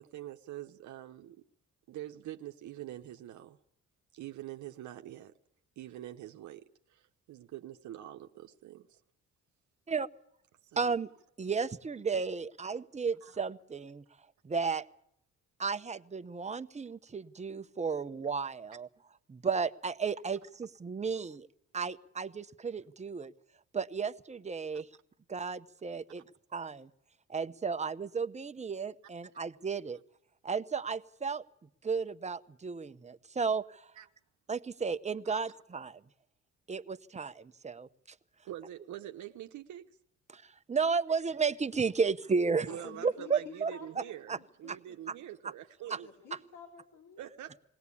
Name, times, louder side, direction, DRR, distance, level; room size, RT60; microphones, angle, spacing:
voice 1, 0.0-1.4 1.9-3.6 4.1-5.3 5.8-9.0 10.6-11.0 13.2-13.5 34.0-34.1 35.2-35.4 38.4-39.9 42.7-46.1 47.2-47.6, right 13 dB, 70° right, 6 dB, 1.0 m, -45 dB
voice 2, 10.8-11.1 11.4-14.0 14.4-14.8 15.6-18.9 19.3-21.5 21.7-23.3 23.7-24.9 25.3-26.2 26.5-26.9 27.3-30.0 30.4-31.4 31.8-33.9 34.5-36.0 36.7-37.9 40.3-42.7 43.0-43.7 44.3-44.4 44.7-44.8 45.1-45.2 45.9-46.0, right 5 dB, 25° right, 11 dB, 0.8 m, -33 dB
voice 3, 42.7-44.1 44.4-45.2 45.8-47.3, left 5 dB, 85° left, -1 dB, 4.4 m, -50 dB
21.0 x 17.5 x 8.5 m, 0.73 s
cardioid pair, 90°, 30 cm